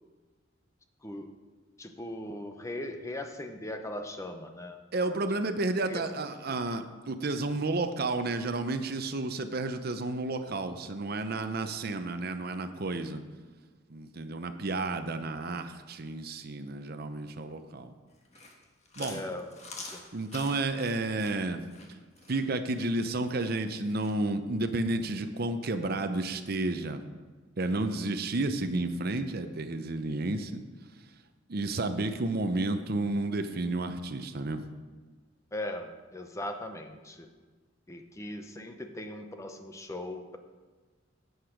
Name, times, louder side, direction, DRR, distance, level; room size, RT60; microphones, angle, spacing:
voice 1, 1.0-1.3 1.8-4.8 5.1-5.2 5.8-6.1 6.5-6.6 19.0-19.5 19.9-20.0 35.5-37.3 37.9-40.4, left 1 dB, 15° left, 6 dB, 0.8 m, -39 dB
voice 2, 4.9-13.2 13.9-17.9 19.0-19.2 20.1-21.6 22.3-27.0 27.6-30.6 31.5-34.6, right 2 dB, 50° right, 8 dB, 0.7 m, -31 dB
Chewing mastication, 18.1-24.2, left 3 dB, 35° left, 1.5 m, -46 dB
10.5 x 8.1 x 5.1 m, 1.4 s
head